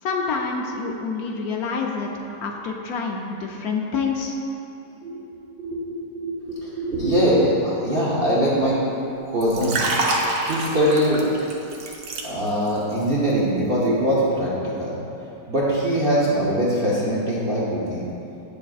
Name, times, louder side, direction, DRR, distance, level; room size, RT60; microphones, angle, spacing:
voice 1, 0.0-4.4, left 4 dB, 70° left, 1 dB, 0.9 m, -27 dB
voice 2, 5.6-8.9 9.3-11.3 12.2-18.1, equal, 45° right, -7 dB, 0.8 m, -22 dB
Liquid, 9.4-12.7 13.0-13.3, right 2 dB, 65° right, 1.2 m, -26 dB
8.9 x 6.7 x 2.4 m, 2.9 s
omnidirectional pair, 1.9 m